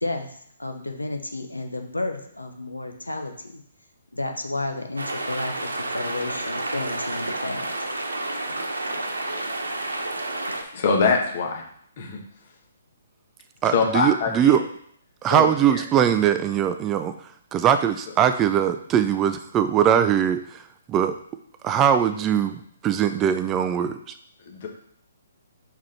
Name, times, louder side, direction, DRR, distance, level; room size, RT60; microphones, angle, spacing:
voice 1, 0.0-3.6 4.1-7.7, left 2 dB, 85° left, 5 dB, 0.9 m, -32 dB
sound 1, 5.0-10.6, right 2 dB, 75° right, 1.0 m, -30 dB
voice 2, 10.7-11.6 12.0-12.2 13.7-14.6 15.3-15.8 24.5-24.7, left 4 dB, 45° left, 2 dB, 1.6 m, -23 dB
voice 3, 13.6-14.6 15.2-17.1 17.5-20.6 20.9-21.2 21.6-24.0, right 9 dB, 20° right, 9 dB, 0.4 m, -21 dB
5.9 x 4.8 x 4.3 m, 0.64 s
figure-of-eight pair, 130°, 0 cm